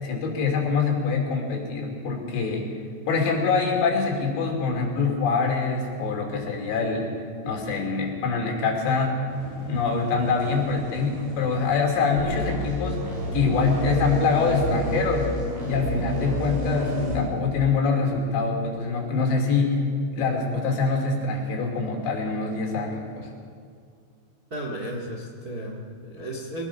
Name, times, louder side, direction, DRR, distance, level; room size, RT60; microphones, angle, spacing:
voice 1, 0.0-2.7 3.1-7.1 7.4-9.2 9.7-13.0 13.3-15.4 15.7-19.9 20.2-23.3, left 4 dB, 80° left, 1 dB, 5.2 m, -24 dB
sound 1, 9.3-17.2, right 1 dB, 60° right, 6.6 m, -34 dB
sound 2, 12.2-17.2, equal, 85° right, 9.6 m, -31 dB
voice 2, 24.5-26.7, right 1 dB, 35° right, 0 dB, 1.4 m, -34 dB
23.0 x 19.5 x 5.9 m, 2.2 s
omnidirectional pair, 5.0 m